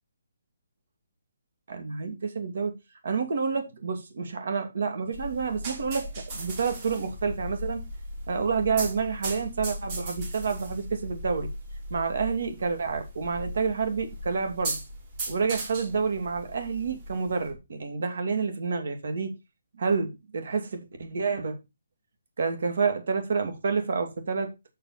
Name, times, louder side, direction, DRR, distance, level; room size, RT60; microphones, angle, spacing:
voice 1, 1.7-2.7 3.0-7.8 8.3-11.5 11.9-14.8 15.3-19.3 19.7-21.6 22.4-24.5, right 5 dB, 60° right, 2.4 m, -29 dB
sound 1, 5.1-17.5, right 1 dB, 30° right, 4.4 m, -37 dB
7.4 x 6.5 x 4.1 m
hypercardioid pair, 170°, 0 cm